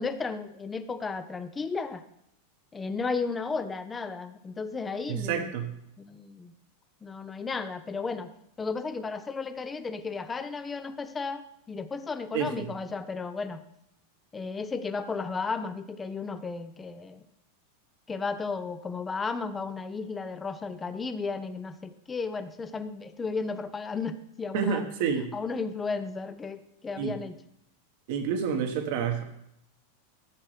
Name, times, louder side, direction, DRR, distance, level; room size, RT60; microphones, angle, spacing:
voice 1, 0.0-2.0 2.7-5.6 6.0-6.5 7.0-13.6 14.3-17.2 18.1-24.8 25.3-27.4, left 4 dB, 20° left, 11 dB, 0.6 m, -34 dB
voice 2, 5.1-5.7 12.3-12.7 24.5-25.3 27.0-27.1 28.1-29.2, right 7 dB, 60° right, 6 dB, 1.4 m, -29 dB
11.5 x 7.6 x 3.3 m, 0.77 s
hypercardioid pair, 100°, 0 cm